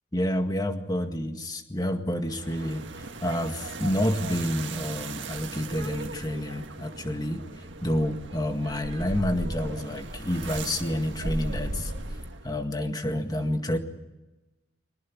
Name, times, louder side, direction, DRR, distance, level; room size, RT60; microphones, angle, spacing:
voice 1, 0.1-7.4 7.8-11.9 12.4-13.8, left 1 dB, 20° left, 6 dB, 1.9 m, -29 dB
sound 1, 2.2-12.6, right 2 dB, 75° right, 1.7 m, -37 dB
22.5 x 19.5 x 8.7 m, 1.1 s
head